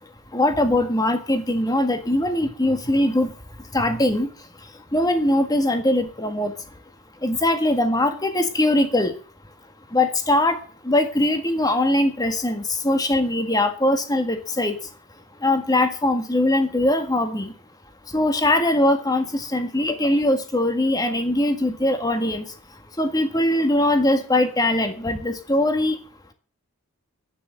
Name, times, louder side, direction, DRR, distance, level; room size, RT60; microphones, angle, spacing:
voice 1, 0.3-3.3 3.7-4.3 4.9-6.5 7.2-9.1 9.9-10.6 10.8-14.8 15.4-17.5 18.1-22.5 23.0-26.0, left 1 dB, 15° left, 7 dB, 1.7 m, -21 dB
11.5 x 10.0 x 6.5 m, 0.40 s
head